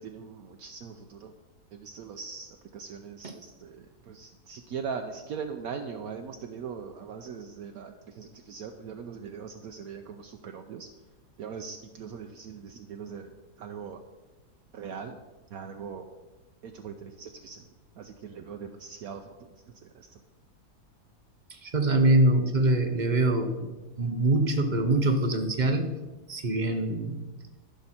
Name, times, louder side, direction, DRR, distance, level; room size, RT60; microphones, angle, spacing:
voice 1, 0.0-1.3 1.7-10.9 11.4-14.0 14.7-15.2 15.5-16.0 16.6-17.7 18.0-19.4 19.8-20.2, right 6 dB, 70° right, 5 dB, 1.0 m, -40 dB
voice 2, 21.5-23.7 24.0-25.9 26.3-27.2, right 2 dB, 40° right, 6 dB, 0.6 m, -24 dB
14.0 x 6.1 x 4.3 m, 1.2 s
omnidirectional pair, 1.8 m